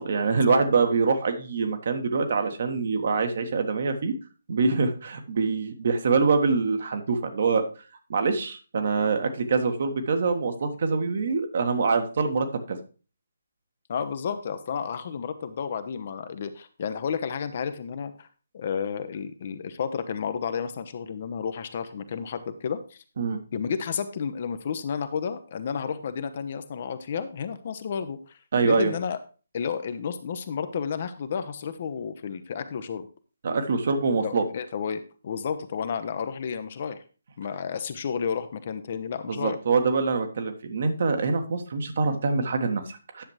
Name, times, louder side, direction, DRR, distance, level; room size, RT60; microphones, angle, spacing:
voice 1, 0.0-4.1 4.5-7.6 8.1-12.8 23.2-23.4 28.5-28.9 33.4-34.4 39.3-43.2, right 4 dB, 45° right, 6 dB, 1.3 m, -25 dB
voice 2, 13.9-18.3 18.5-23.0 23.5-29.2 29.5-33.1 34.2-37.0 37.4-39.6, left 6 dB, 40° left, 10 dB, 0.8 m, -31 dB
10.0 x 7.1 x 3.2 m, 0.35 s
figure-of-eight pair, 140°, 0 cm